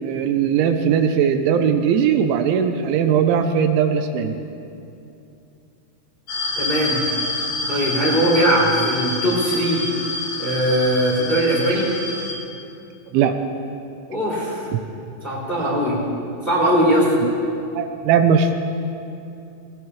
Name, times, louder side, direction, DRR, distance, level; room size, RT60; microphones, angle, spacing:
voice 1, 0.0-4.4 13.1-13.3 17.2-17.3 17.8-18.5, right 7 dB, 85° right, 6 dB, 3.1 m, -19 dB
sound 1, 6.3-12.3, left 2 dB, 60° left, 4.4 m, -27 dB
voice 2, 6.5-7.0 7.7-9.8 10.4-11.9 14.1-14.6 15.2-16.0 16.4-17.2, right 1 dB, 15° left, -6 dB, 2.7 m, -20 dB
20.0 x 19.5 x 3.2 m, 2.6 s
omnidirectional pair, 5.4 m